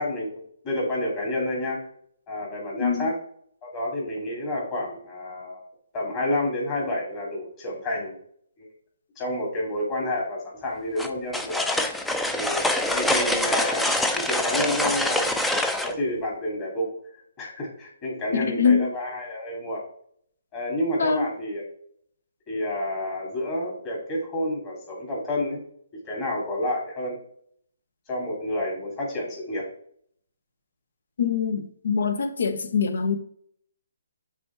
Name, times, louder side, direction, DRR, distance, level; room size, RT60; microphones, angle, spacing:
voice 1, 0.0-1.8 2.3-3.1 3.6-5.6 5.9-8.2 8.6-8.7 9.2-11.7 12.3-13.9 14.2-15.4 15.8-16.9 17.4-19.8 20.5-21.6 22.5-25.6 26.0-27.2 28.1-29.6, left 1 dB, 25° left, 2.4 m, -29 dB
voice 2, 2.8-3.1 18.3-18.9 21.0-21.3 31.2-33.2, left 6 dB, 65° left, 0.9 m, -23 dB
sound 1, 11.0-15.9, left 1 dB, 5° left, 0.4 m, -25 dB
6.1 x 3.6 x 4.4 m
figure-of-eight pair, 145°, 0 cm